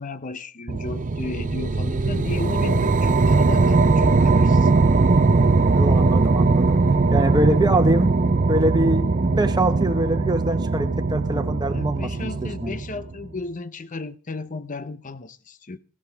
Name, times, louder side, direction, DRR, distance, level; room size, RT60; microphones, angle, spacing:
voice 1, 0.0-4.8 11.7-15.8, left 3 dB, 40° left, 0.7 m, -34 dB
sound 1, 0.7-13.2, right 3 dB, 40° right, 0.5 m, -20 dB
voice 2, 5.7-6.8 7.1-8.2 8.5-12.8, right 1 dB, 20° right, 1.2 m, -24 dB
15.5 x 12.5 x 3.4 m
head